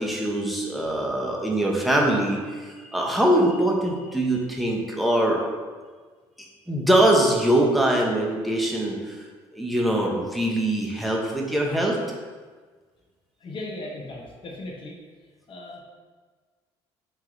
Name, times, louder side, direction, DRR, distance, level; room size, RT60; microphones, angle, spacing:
voice 1, 0.0-5.4 6.7-9.2 9.5-12.0, right 1 dB, ahead, -2 dB, 0.9 m, -23 dB
voice 2, 13.4-14.9 15.5-15.8, left 2 dB, 45° left, -2 dB, 0.9 m, -37 dB
3.4 x 3.1 x 3.8 m, 1.5 s
supercardioid pair, 60°, 12 cm